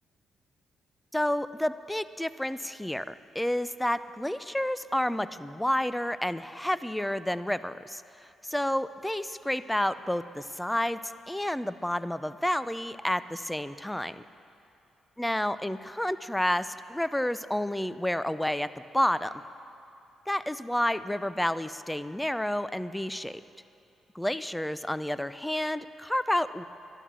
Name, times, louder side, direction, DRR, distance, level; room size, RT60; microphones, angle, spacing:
voice 1, 1.1-8.0 8.4-14.2 15.2-18.7 18.9-19.4 20.3-23.4 24.1-26.6, left 1 dB, 5° left, 14 dB, 0.5 m, -30 dB
12.0 x 11.0 x 7.4 m, 2.7 s
supercardioid pair, 60°, 0 cm